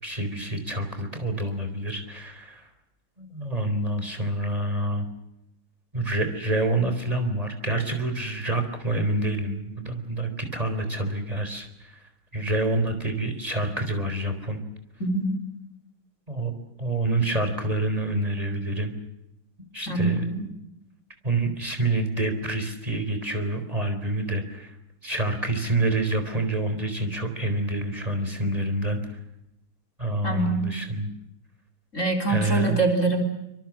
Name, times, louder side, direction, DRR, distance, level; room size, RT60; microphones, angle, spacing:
voice 1, 0.0-2.7 3.2-5.1 5.9-12.0 12.3-14.6 16.3-16.5 16.8-18.9 19.7-20.2 21.2-24.8 25.0-29.0 30.0-31.1 32.3-32.8, right 2 dB, 15° right, 7 dB, 4.3 m, -27 dB
voice 2, 15.0-15.3 19.9-20.4 30.2-30.8 31.9-33.2, right 3 dB, 35° left, 6 dB, 4.2 m, -24 dB
26.5 x 26.0 x 7.5 m, 0.85 s
omnidirectional pair, 2.4 m